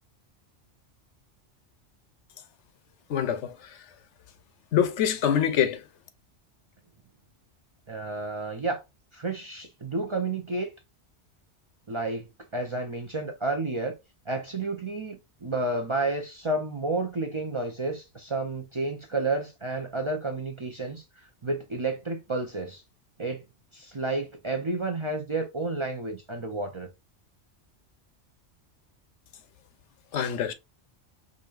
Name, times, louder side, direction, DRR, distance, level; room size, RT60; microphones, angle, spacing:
voice 1, 3.1-3.8 4.7-5.8 30.1-30.5, left 9 dB, 80° left, 1.0 m, -25 dB
voice 2, 7.9-8.8 9.1-10.7 11.9-12.3 12.5-13.9 14.3-21.0 21.4-22.8 23.2-23.4 23.7-26.9, right 2 dB, 35° right, 0.5 m, -31 dB
5.0 x 2.7 x 2.4 m
omnidirectional pair, 1.2 m